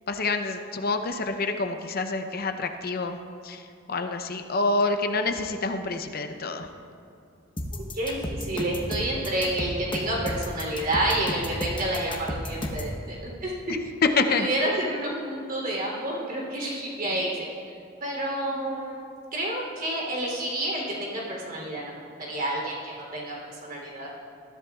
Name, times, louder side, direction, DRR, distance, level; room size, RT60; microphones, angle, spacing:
voice 1, 0.1-3.2 3.4-3.6 3.9-6.7 14.2-14.5, left 3 dB, 50° left, 6 dB, 0.7 m, -27 dB
sound 1, 7.6-12.9, left 1 dB, 25° left, 1.0 m, -32 dB
voice 2, 7.9-13.2 13.4-13.6 14.4-17.3 18.0-19.0 19.3-23.3 23.6-24.1, right 1 dB, 45° right, -3 dB, 3.3 m, -29 dB
20.0 x 13.5 x 2.4 m, 2.5 s
head